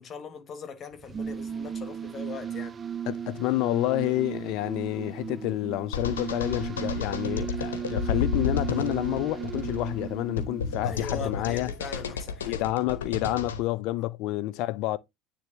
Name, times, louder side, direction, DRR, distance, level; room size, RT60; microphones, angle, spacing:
voice 1, 0.0-2.8 10.8-12.6, left 6 dB, 35° left, 1.6 m, -40 dB
sound 1, 0.9-11.4, right 8 dB, 30° right, 0.4 m, -36 dB
voice 2, 3.1-11.7 12.5-15.0, left 17 dB, 55° left, 0.5 m, -29 dB
sound 2, 5.9-13.6, left 5 dB, 75° left, 0.8 m, -32 dB
9.4 x 3.4 x 3.0 m
figure-of-eight pair, 70°, 0 cm